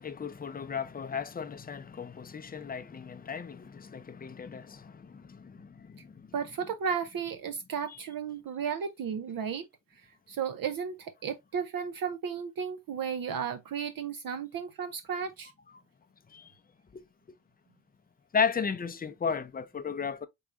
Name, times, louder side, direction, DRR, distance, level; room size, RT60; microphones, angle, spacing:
voice 1, 0.0-6.3 15.7-15.8 16.3-16.5 16.9-17.0 18.3-20.3, left 6 dB, 25° left, 0.5 m, -34 dB
voice 2, 6.3-9.7 10.3-15.5, right 7 dB, 60° right, 0.5 m, -34 dB
4.6 x 3.0 x 2.4 m
cardioid pair, 90°, 40 cm